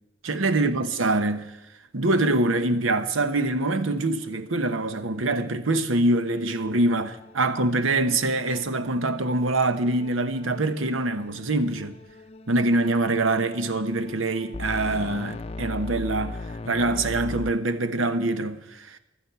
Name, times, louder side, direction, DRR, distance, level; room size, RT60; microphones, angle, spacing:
voice 1, 0.2-1.6 1.9-12.0 12.5-16.4 16.6-19.0, right 2 dB, 90° right, 1.0 m, -24 dB
sound 1, 3.9-4.0 4.3-4.5 4.8-17.5, left 2 dB, 30° left, 0.5 m, -40 dB
12.0 x 10.0 x 8.1 m
head